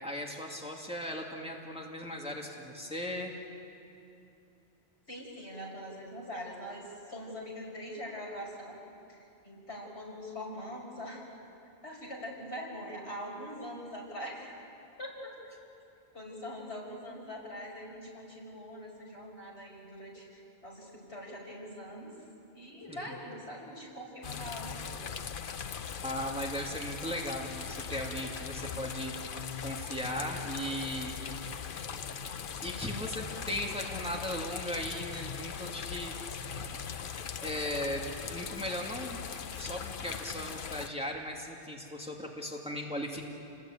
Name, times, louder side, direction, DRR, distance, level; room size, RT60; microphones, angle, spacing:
voice 1, 0.0-3.3 22.9-23.1 26.0-29.1 29.6-31.2 32.6-36.1 36.7-36.8 37.4-39.2 39.5-43.3, equal, 5° right, -1 dB, 2.5 m, -37 dB
voice 2, 5.1-8.8 9.1-9.2 9.4-11.2 11.8-14.5 15.0-15.3 16.1-22.1 22.5-25.0, equal, 90° left, -2 dB, 6.3 m, -43 dB
sound 1, 24.2-40.9, left 7 dB, 55° left, 0.9 m, -40 dB
29.5 x 20.0 x 9.2 m, 2.8 s
omnidirectional pair, 1.1 m